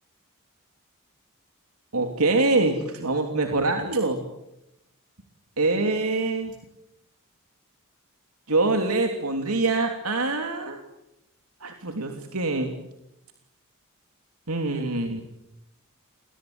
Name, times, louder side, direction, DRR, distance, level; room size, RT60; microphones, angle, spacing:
voice 1, 1.9-4.2 5.6-6.5 8.5-10.8 11.6-12.7 14.5-15.2, right 2 dB, 90° right, 4 dB, 3.2 m, -24 dB
29.0 x 22.5 x 9.1 m, 0.85 s
head